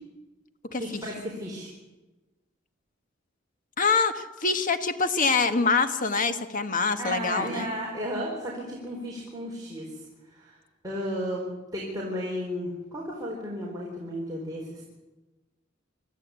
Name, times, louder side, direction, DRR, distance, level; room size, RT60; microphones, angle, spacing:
voice 1, 0.8-1.7 7.0-9.9 10.3-10.6 10.8-14.8, equal, 20° right, -4 dB, 4.3 m, -33 dB
voice 2, 3.8-7.7, left 4 dB, 45° left, 9 dB, 1.4 m, -25 dB
25.0 x 14.0 x 8.3 m, 1.1 s
head